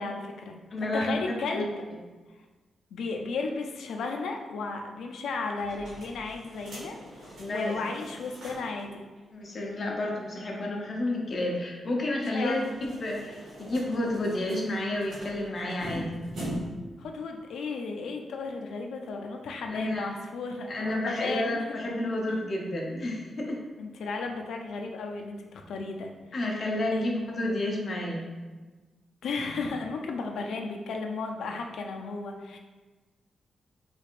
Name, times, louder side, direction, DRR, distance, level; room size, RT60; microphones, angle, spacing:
voice 1, 0.0-0.6 0.9-1.8 2.9-9.1 12.2-12.6 17.0-21.6 22.3-22.4 23.8-26.1 26.9-27.0 29.2-32.6, left 3 dB, 85° left, 3 dB, 0.4 m, -34 dB
voice 2, 0.7-1.2 1.5-1.7 7.4-7.8 9.3-16.2 19.7-20.1 20.7-23.6 26.3-28.3, left 1 dB, 40° left, -1 dB, 0.6 m, -30 dB
sound 1, 5.6-8.8 9.1-9.2 9.5-9.6 12.3-16.9, equal, 75° right, 1.1 m, -42 dB
3.4 x 3.3 x 2.4 m, 1.3 s
wide cardioid pair, 155°, 0 cm